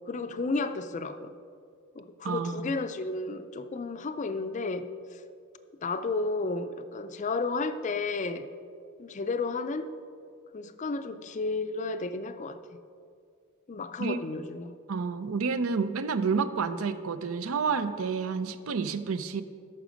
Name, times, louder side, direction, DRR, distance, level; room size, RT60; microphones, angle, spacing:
voice 1, 0.1-1.3 2.0-5.2 5.8-8.5 9.0-10.0 10.5-12.6 13.7-14.8, left 3 dB, 35° left, 0.4 m, -32 dB
voice 2, 2.2-2.7 14.0-14.2 14.9-19.4, right 5 dB, 70° right, 0.5 m, -29 dB
13.0 x 5.9 x 5.1 m
head